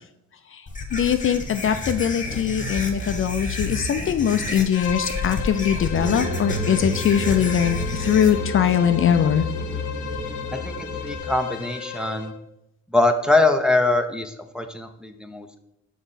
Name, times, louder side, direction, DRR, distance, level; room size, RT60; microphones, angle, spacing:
sound 1, 0.7-8.3, left 2 dB, 25° left, 1.2 m, -30 dB
voice 1, 0.9-9.5, left 9 dB, 45° left, 9 dB, 0.4 m, -21 dB
Bowed string instrument, 4.7-12.4, left 8 dB, 75° left, 0.8 m, -35 dB
sound 2, 5.9-11.2, left 1 dB, 35° right, 1.5 m, -30 dB
voice 2, 10.5-12.3 12.9-15.6, left 2 dB, 5° right, 5 dB, 0.6 m, -23 dB
5.8 x 5.0 x 4.1 m, 0.82 s
cardioid pair, 90°, 30 cm